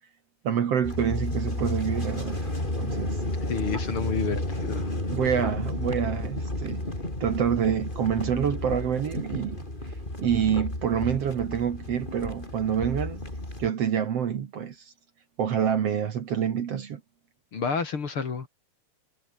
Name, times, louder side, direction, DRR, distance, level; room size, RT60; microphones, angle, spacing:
voice 1, 0.4-2.5 2.8-3.2 5.1-6.8 7.2-9.7 10.2-13.2 13.6-14.9 15.4-17.0, right 8 dB, 55° right, 2.4 m, -27 dB
sound 1, 0.8-13.7, left 1 dB, 15° left, 5.5 m, -32 dB
voice 2, 3.5-4.9 17.5-18.5, left 5 dB, 45° left, 3.2 m, -30 dB
omnidirectional pair, 3.7 m